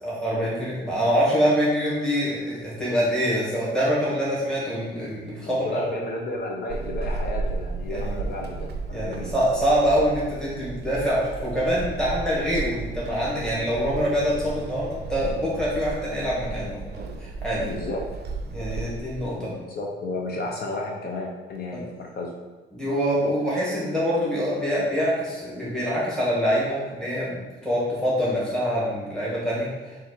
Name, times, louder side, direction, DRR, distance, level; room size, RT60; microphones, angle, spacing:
voice 1, 0.0-5.8 7.9-8.1 8.9-17.7 18.5-19.5 21.7-21.8 22.7-29.9, equal, 5° left, -8 dB, 1.4 m, -25 dB
voice 2, 5.4-9.3 17.6-18.1 19.4-22.3, left 2 dB, 50° left, -1 dB, 0.6 m, -32 dB
Walk footsteps / Squeak, 6.7-19.4, right 4 dB, 55° right, 0.4 m, -34 dB
4.1 x 2.5 x 4.2 m, 1.4 s
cardioid pair, 90°, 20 cm